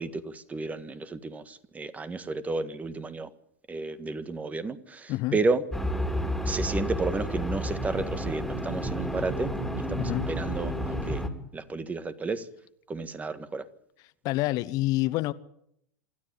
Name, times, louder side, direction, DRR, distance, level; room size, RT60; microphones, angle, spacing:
voice 1, 0.0-3.3 3.7-5.6 6.4-11.2 11.5-12.5 12.9-13.6, right 3 dB, 15° right, 1.6 m, -32 dB
sound 1, 5.7-11.3, equal, ahead, 3.3 m, -31 dB
voice 2, 10.0-10.3 14.2-15.3, left 18 dB, 50° left, 0.9 m, -27 dB
26.5 x 13.0 x 8.6 m
hypercardioid pair, 95°, 8 cm